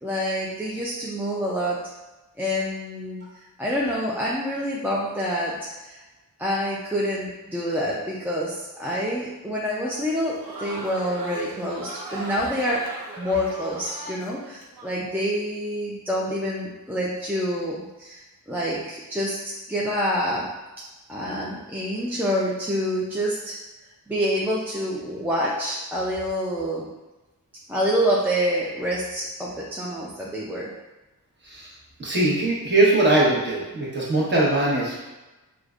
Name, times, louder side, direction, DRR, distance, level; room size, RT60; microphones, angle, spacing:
voice 1, 0.0-1.8 2.4-6.0 6.4-12.8 13.2-20.5 21.1-23.6 24.1-26.9 27.7-30.7, equal, 5° right, -6 dB, 0.4 m, -27 dB
Crowd, 10.1-14.9, right 2 dB, 80° right, 0.6 m, -38 dB
voice 2, 32.0-35.0, right 2 dB, 30° right, -6 dB, 1.0 m, -21 dB
4.9 x 2.1 x 2.4 m, 1.1 s
wide cardioid pair, 120°, 35 cm